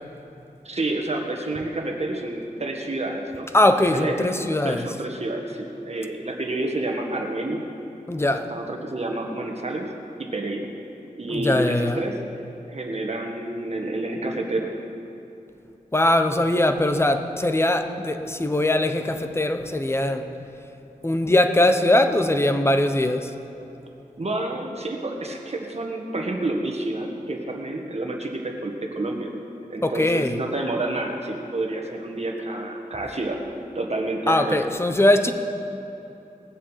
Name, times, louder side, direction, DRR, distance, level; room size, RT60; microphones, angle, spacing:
voice 1, 0.6-3.5 3.9-4.3 4.6-7.7 8.5-9.9 10.2-10.7 11.2-12.2 12.7-14.7 24.2-29.4 29.7-33.4 33.7-34.6, right 2 dB, 50° right, 1 dB, 1.6 m, -29 dB
voice 2, 3.5-4.9 8.1-8.5 11.3-12.0 15.9-20.3 21.0-23.3 29.8-30.4 34.3-35.3, left 1 dB, 20° left, 7 dB, 0.8 m, -21 dB
19.5 x 7.6 x 5.7 m, 2.9 s
wide cardioid pair, 100°, 14 cm